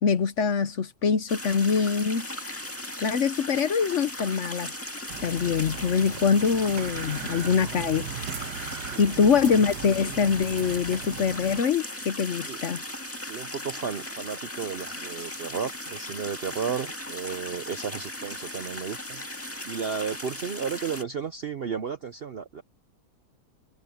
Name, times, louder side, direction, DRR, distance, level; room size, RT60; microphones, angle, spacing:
voice 1, 0.0-2.3 3.0-4.7 5.2-8.1 9.0-12.8, left 6 dB, 55° left, 1.0 m, -24 dB
sound 1, 1.3-21.0, left 1 dB, 10° left, 1.7 m, -37 dB
sound 2, 5.1-11.6, right 8 dB, 75° right, 1.7 m, -38 dB
voice 2, 13.2-19.2 19.6-22.6, right 6 dB, 55° right, 0.7 m, -33 dB
omnidirectional pair, 1.7 m